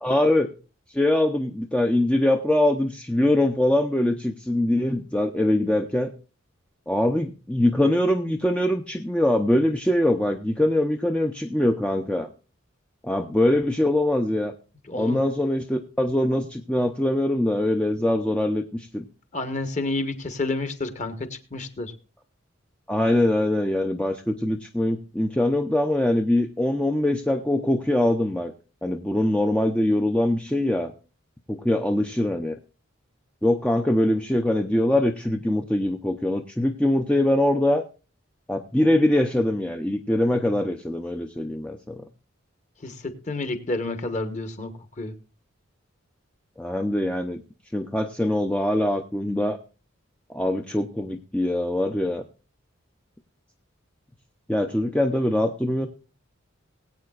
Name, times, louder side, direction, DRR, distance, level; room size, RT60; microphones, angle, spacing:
voice 1, 0.0-0.5 0.9-6.1 6.9-12.3 13.0-14.5 14.9-19.0 22.9-28.5 28.8-30.9 31.5-32.6 33.4-37.8 38.5-42.0 46.6-47.4 47.7-49.6 50.3-52.2 54.5-55.9, left 1 dB, 5° left, 4 dB, 0.6 m, -23 dB
voice 2, 14.9-15.2 19.3-21.9 42.8-45.1, left 2 dB, 35° left, 8 dB, 1.3 m, -30 dB
20.5 x 8.6 x 2.4 m, 0.34 s
head